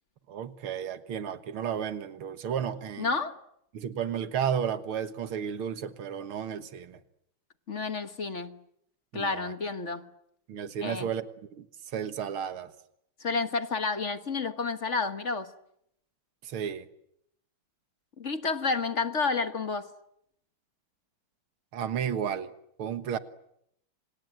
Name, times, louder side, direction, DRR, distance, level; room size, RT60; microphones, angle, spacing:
voice 1, 0.3-3.1 3.7-7.0 9.1-9.5 10.5-11.3 11.6-11.7 11.9-12.7 16.4-16.9 21.7-22.5 22.8-23.2, right 8 dB, 75° right, 2.3 m, -33 dB
voice 2, 3.0-3.4 7.7-8.6 9.1-10.1 10.8-11.1 13.2-15.5 18.2-19.9, left 4 dB, 40° left, 1.4 m, -30 dB
28.5 x 27.0 x 7.7 m
omnidirectional pair, 2.4 m